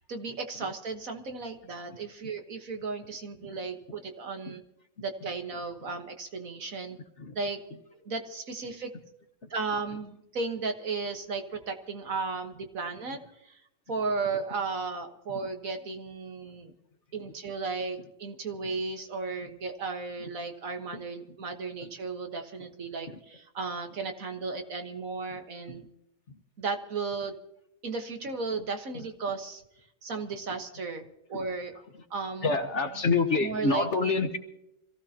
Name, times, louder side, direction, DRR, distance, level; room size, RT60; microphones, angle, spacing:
voice 1, 0.1-4.6 5.0-7.0 7.3-7.6 8.1-8.9 9.5-13.6 13.9-16.7 17.1-25.9 26.6-27.3 27.8-29.6 30.0-31.8 32.1-32.5 33.4-34.2, right 4 dB, 55° right, 5 dB, 1.7 m, -35 dB
voice 2, 32.4-34.4, left 4 dB, 45° left, 6 dB, 1.5 m, -28 dB
25.5 x 16.0 x 2.9 m, 0.82 s
omnidirectional pair, 1.7 m